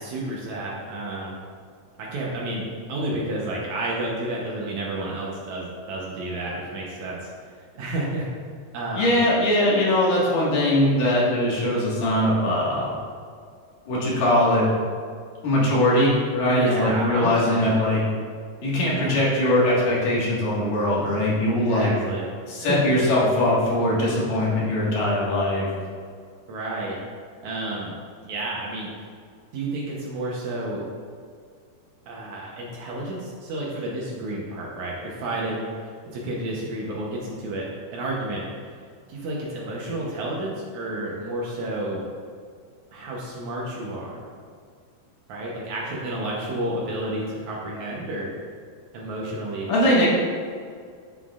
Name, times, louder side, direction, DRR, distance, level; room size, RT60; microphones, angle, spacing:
voice 1, 0.0-1.4 2.0-7.3 7.7-8.2 8.7-9.3 16.5-17.8 18.6-19.2 21.5-22.3 22.6-23.0 26.5-27.0 27.4-28.0 28.2-28.9 29.5-30.8 32.1-37.7 37.9-38.4 39.1-42.1 42.9-44.2 45.3-48.3 48.9-49.7, right 1 dB, 85° right, -4 dB, 1.6 m, -31 dB
voice 2, 8.9-12.9 13.9-14.7 15.4-18.0 18.6-21.9 22.5-25.7 49.7-50.1, left 1 dB, 60° left, -6 dB, 3.0 m, -21 dB
9.0 x 7.3 x 2.5 m, 2.1 s
omnidirectional pair, 4.7 m